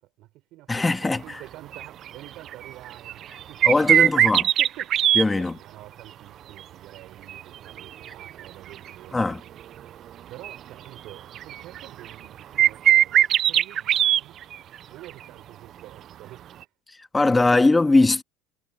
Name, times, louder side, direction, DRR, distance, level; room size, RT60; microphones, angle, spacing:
voice 1, 0.0-9.4 10.3-14.4 14.9-16.5, right 17 dB, 55° right, 6.5 m, -47 dB
voice 2, 0.7-1.2 3.6-4.4 5.2-5.6 9.1-9.4 17.1-18.2, left 2 dB, 10° left, 2.1 m, -20 dB
sound 1, 1.7-2.1 2.5-5.2 7.3-8.5 8.9-9.0 10.4-10.6 11.1-12.3 12.6-14.7 15.1-15.2 16.6-16.7, right 11 dB, 40° right, 0.5 m, -20 dB
cardioid pair, 135°, 0 cm